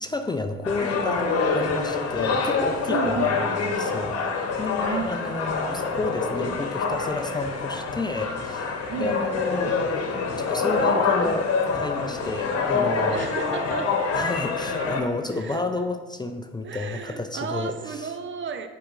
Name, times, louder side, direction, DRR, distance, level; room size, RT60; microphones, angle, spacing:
voice 1, 0.0-4.2 4.6-9.8 10.4-13.3 14.1-18.1, left 3 dB, 15° left, 5 dB, 0.4 m, -31 dB
sound 1, 0.6-15.0, left 4 dB, 50° left, 1.0 m, -26 dB
voice 2, 2.9-3.4 4.8-5.2 8.9-9.2 13.1-14.0 15.3-15.6 16.6-18.7, right 6 dB, 35° right, 8 dB, 0.5 m, -33 dB
8.6 x 4.7 x 2.5 m, 1.4 s
hypercardioid pair, 50°, 32 cm